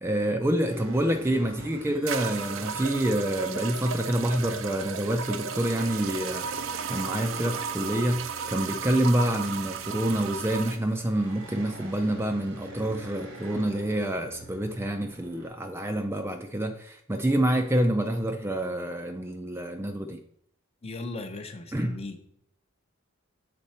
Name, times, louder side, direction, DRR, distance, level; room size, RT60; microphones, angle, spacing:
voice 1, 0.0-20.2 21.7-22.0, right 1 dB, 10° right, 5 dB, 0.4 m, -27 dB
sound 1, 0.7-15.5, right 1 dB, 90° right, 1.6 m, -46 dB
sound 2, 1.3-1.4 2.1-10.8, right 7 dB, 65° right, 0.5 m, -34 dB
voice 2, 20.8-22.2, left 2 dB, 30° left, 6 dB, 0.7 m, -37 dB
6.7 x 4.1 x 4.2 m, 0.67 s
head